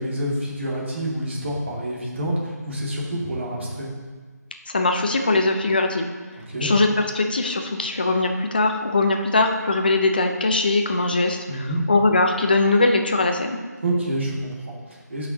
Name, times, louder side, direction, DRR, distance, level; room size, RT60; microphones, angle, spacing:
voice 1, 0.0-3.9 6.3-6.7 11.5-11.8 13.8-15.3, right 1 dB, 40° right, -4 dB, 2.1 m, -27 dB
voice 2, 4.7-6.1 6.6-6.9 7.1-13.6, left 2 dB, 30° left, 4 dB, 0.6 m, -21 dB
13.0 x 5.9 x 2.8 m, 1.4 s
figure-of-eight pair, 175°, 9 cm